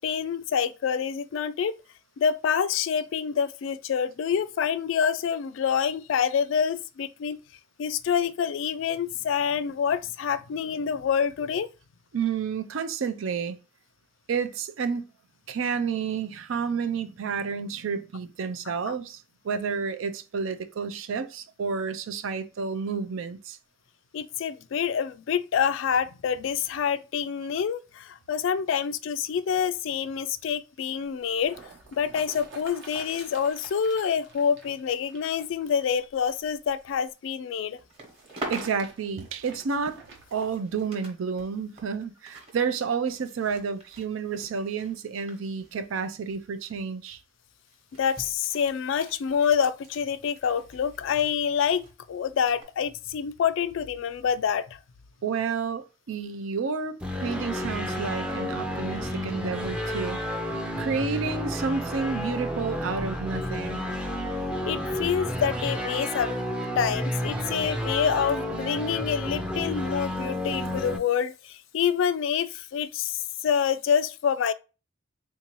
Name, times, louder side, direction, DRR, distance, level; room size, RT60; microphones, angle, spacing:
voice 1, 0.0-1.8 2.2-7.4 7.8-11.7 18.9-19.0 24.1-31.6 31.9-37.8 48.0-54.8 64.6-66.4 66.8-74.5, left 7 dB, 70° left, 0.3 m, -27 dB
voice 2, 12.1-13.6 14.3-15.1 15.5-23.6 38.5-40.0 40.3-47.2 55.2-63.9, right 5 dB, 80° right, 0.4 m, -30 dB
sound 1, 31.0-37.1 37.9-40.5 41.1-41.2, right 3 dB, 65° right, 0.8 m, -49 dB
sound 2, 37.8-41.1 41.4-46.4 46.6-46.9 47.7-51.9 52.5-52.6, right 1 dB, 30° right, 1.0 m, -45 dB
sound 3, 57.0-71.0, equal, 5° right, 0.4 m, -31 dB
3.6 x 2.7 x 2.9 m
head